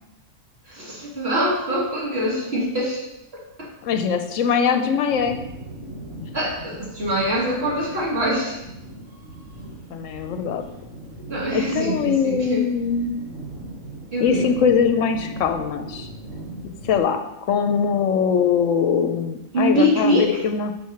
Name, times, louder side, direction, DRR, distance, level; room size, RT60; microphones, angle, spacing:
voice 1, 0.7-3.0 3.3-3.7 6.3-8.6 11.3-12.6 14.1-14.5 19.5-20.4, equal, 50° right, -5 dB, 2.1 m, -24 dB
voice 2, 3.8-5.4 6.2-6.3 9.9-10.6 11.5-13.2 14.2-16.1 16.8-17.2 17.5-20.7, left 6 dB, 75° left, 7 dB, 0.9 m, -22 dB
sound 1, 5.1-17.0, right 1 dB, 70° right, 1.7 m, -39 dB
4.7 x 4.7 x 5.7 m, 0.87 s
omnidirectional pair, 1.4 m